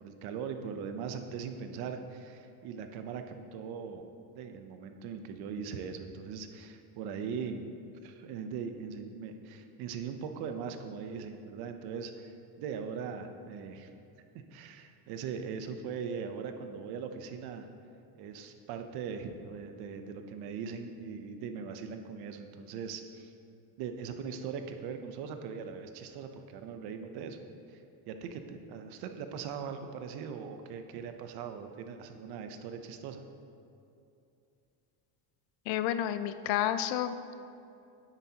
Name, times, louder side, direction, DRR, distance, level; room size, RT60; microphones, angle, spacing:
voice 1, 0.0-4.0 4.3-7.7 8.0-13.9 14.3-17.7 18.1-23.3 23.8-27.4 27.7-33.2, right 6 dB, 55° right, 7 dB, 0.7 m, -40 dB
voice 2, 35.7-37.2, left 11 dB, 70° left, 11 dB, 0.6 m, -30 dB
9.9 x 8.1 x 2.8 m, 2.7 s
cardioid pair, 175°, 47 cm